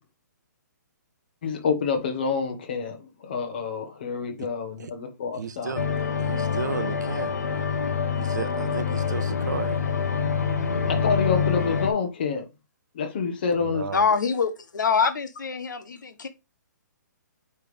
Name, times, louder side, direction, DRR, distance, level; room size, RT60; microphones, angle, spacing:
voice 1, 1.4-5.8 10.9-12.5 12.9-13.9, left 5 dB, 30° left, 1.1 m, -27 dB
voice 2, 5.4-5.8 6.2-7.4 8.2-9.8 13.6-14.0, right 6 dB, 70° right, 0.8 m, -33 dB
sound 1, 5.8-11.9, left 6 dB, 55° left, 1.2 m, -26 dB
voice 3, 13.9-16.3, left 6 dB, 80° left, 1.2 m, -25 dB
8.9 x 3.3 x 3.6 m
hypercardioid pair, 180°, 10 cm